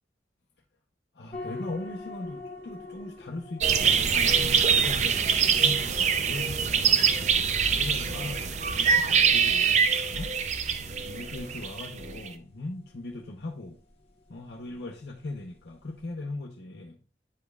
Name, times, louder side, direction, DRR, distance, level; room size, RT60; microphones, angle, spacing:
voice 1, 1.1-10.3 11.0-13.8 14.3-17.0, left 2 dB, 70° left, 0.8 m, -39 dB
sound 1, 1.3-16.1, left 3 dB, 35° left, 1.2 m, -47 dB
sound 2, 3.6-12.3, right 6 dB, 40° right, 0.5 m, -24 dB
sound 3, 7.3-9.5 10.1-11.7 12.0-12.3, left 1 dB, 80° right, 3.2 m, -42 dB
9.3 x 5.1 x 2.3 m
head